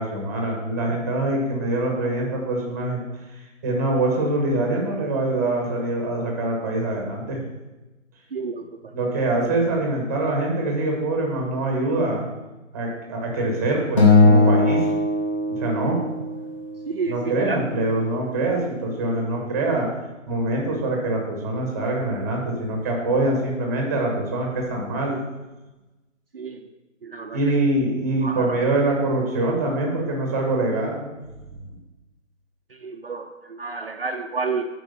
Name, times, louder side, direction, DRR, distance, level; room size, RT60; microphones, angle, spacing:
voice 1, 0.0-3.0 3.3-7.4 8.9-12.3 12.7-14.9 15.5-16.0 17.1-19.9 20.3-25.2 27.3-31.1, right 2 dB, 15° right, 0 dB, 1.1 m, -24 dB
voice 2, 8.3-8.6 16.9-17.1 17.5-17.6 26.3-26.7 27.0-27.4 28.2-28.6 32.7-34.7, right 4 dB, 45° right, 2 dB, 0.7 m, -30 dB
Acoustic guitar, 14.0-16.4, left 2 dB, 25° left, 1.4 m, -18 dB
8.3 x 4.6 x 6.9 m, 1.1 s
figure-of-eight pair, 160°, 39 cm